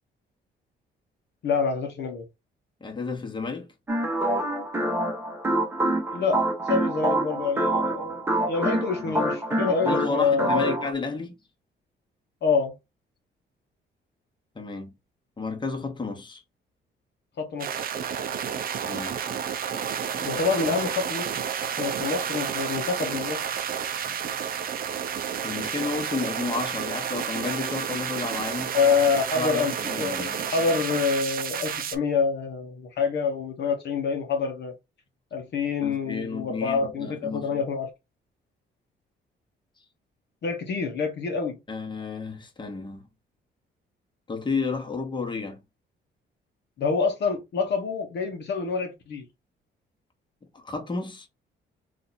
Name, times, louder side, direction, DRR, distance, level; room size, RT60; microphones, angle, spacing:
voice 1, 1.4-2.2 6.1-10.8 12.4-12.7 17.4-17.7 20.2-21.4 21.8-23.4 24.0-24.1 28.7-34.7 35.3-37.9 40.4-41.6 46.8-49.2, left 5 dB, 60° left, 0.8 m, -27 dB
voice 2, 2.8-3.6 9.0-9.2 9.8-11.4 14.5-14.9 15.4-16.4 18.8-19.2 25.4-28.8 29.4-30.5 35.8-37.6 41.7-43.0 44.3-45.6 50.6-51.3, left 4 dB, 25° left, 1.1 m, -32 dB
sound 1, 3.9-10.9, right 1 dB, 10° right, 0.9 m, -26 dB
sound 2, 17.6-32.0, right 8 dB, 50° right, 0.5 m, -31 dB
2.8 x 2.5 x 4.1 m
cardioid pair, 90°, 20 cm